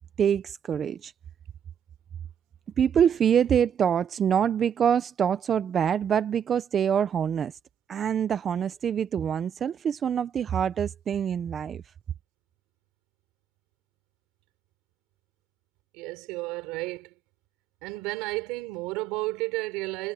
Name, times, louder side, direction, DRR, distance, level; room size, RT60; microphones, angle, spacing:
voice 1, 0.2-1.1 2.8-7.5 7.9-11.8, right 8 dB, 30° right, 0.5 m, -25 dB
voice 2, 15.9-17.1 17.8-20.1, right 22 dB, 70° right, 3.8 m, -32 dB
cardioid pair, 170°, 0 cm